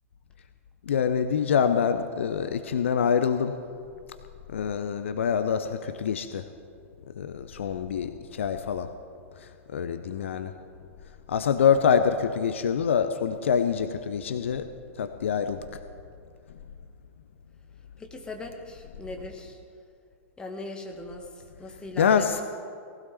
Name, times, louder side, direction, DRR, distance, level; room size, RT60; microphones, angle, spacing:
voice 1, 0.9-3.6 4.5-6.4 7.2-8.9 9.7-10.5 11.3-14.7 15.0-15.6 22.0-22.4, left 7 dB, 60° left, 9 dB, 0.7 m, -25 dB
voice 2, 18.0-19.6 20.4-21.3 21.6-22.4, left 2 dB, 10° left, 3 dB, 1.9 m, -39 dB
19.0 x 15.5 x 4.4 m, 2.3 s
figure-of-eight pair, 100°, 8 cm